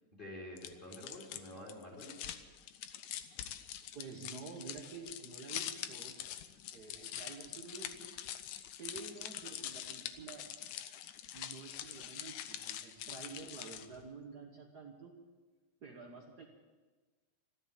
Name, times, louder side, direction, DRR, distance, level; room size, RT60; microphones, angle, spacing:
voice 1, 0.1-2.1, left 1 dB, 15° left, -2 dB, 3.1 m, -48 dB
sound 1, 0.6-14.0, left 11 dB, 75° left, 1.9 m, -45 dB
voice 2, 3.9-6.1 6.7-8.2 8.8-10.5 11.3-15.2 15.8-16.5, right 4 dB, 75° right, 0 dB, 0.9 m, -49 dB
13.5 x 13.0 x 8.3 m, 1.4 s
omnidirectional pair, 3.9 m